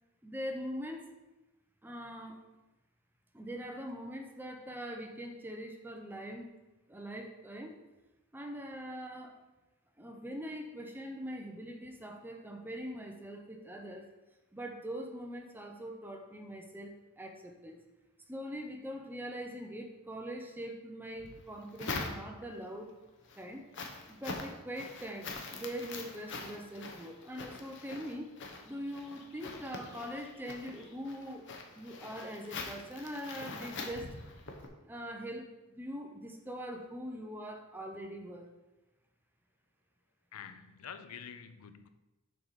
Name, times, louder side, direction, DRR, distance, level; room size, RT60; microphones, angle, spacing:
voice 1, 0.2-1.1 1.8-2.4 3.3-6.5 6.9-7.8 8.3-9.4 10.0-14.1 14.5-17.8 18.3-22.9 23.4-23.7 24.1-28.3 28.7-31.5 31.8-34.1 34.8-38.5, equal, 10° right, 3 dB, 0.6 m, -42 dB
sound 1, 21.2-22.6 23.1-34.7, left 3 dB, 55° left, 0.9 m, -44 dB
voice 2, 40.3-41.9, left 7 dB, 85° left, 10 dB, 0.5 m, -47 dB
6.8 x 4.7 x 4.1 m, 1.0 s
head